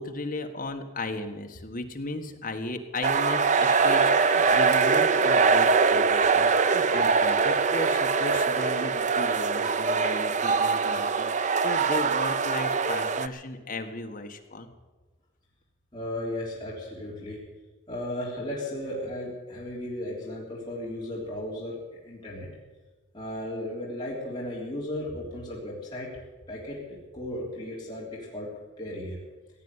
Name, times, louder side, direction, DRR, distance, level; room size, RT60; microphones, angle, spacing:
voice 1, 0.0-14.7, left 2 dB, 40° left, 4 dB, 1.5 m, -35 dB
sound 1, 3.0-13.3, right 5 dB, 35° right, 0.5 m, -23 dB
sound 2, 3.5-7.7, right 3 dB, 70° right, 0.9 m, -42 dB
voice 2, 15.9-17.4 17.9-21.8 22.0-22.5 23.1-26.1 26.5-26.8 27.1-28.5 28.8-29.2, left 1 dB, 20° left, -6 dB, 3.4 m, -35 dB
16.5 x 8.5 x 9.6 m, 1.2 s
head